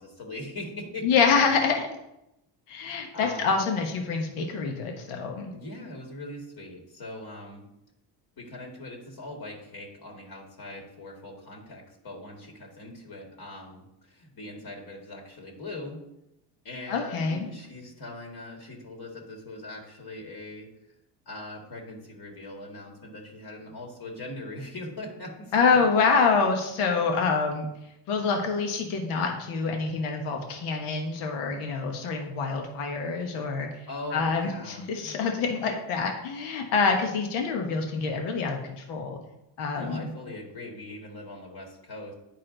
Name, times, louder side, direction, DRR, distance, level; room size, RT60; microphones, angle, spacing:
voice 1, 0.0-1.0 3.1-3.6 5.5-7.6 8.4-16.0 16.6-20.7 21.3-25.8 33.9-35.2 39.7-42.1, left 1 dB, 50° left, 0 dB, 2.0 m, -41 dB
voice 2, 1.0-1.9 2.7-5.5 16.9-17.5 25.5-27.7 28.1-33.9 34.1-39.2 39.6-40.1, left 5 dB, 80° left, 2 dB, 1.3 m, -26 dB
9.7 x 4.2 x 3.9 m, 0.87 s
supercardioid pair, 75°, 49 cm